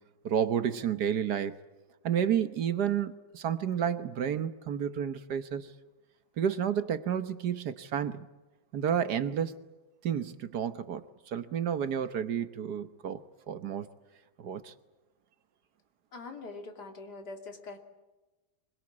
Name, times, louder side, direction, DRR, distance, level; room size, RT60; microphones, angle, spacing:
voice 1, 0.2-1.6 2.0-5.7 6.4-8.3 8.7-9.6 10.0-13.2 13.5-13.9 14.4-14.7, right 8 dB, 70° right, 11 dB, 1.6 m, -31 dB
voice 2, 16.1-17.8, left 3 dB, 70° left, 4 dB, 3.4 m, -43 dB
25.0 x 23.0 x 8.7 m, 1.1 s
omnidirectional pair, 1.8 m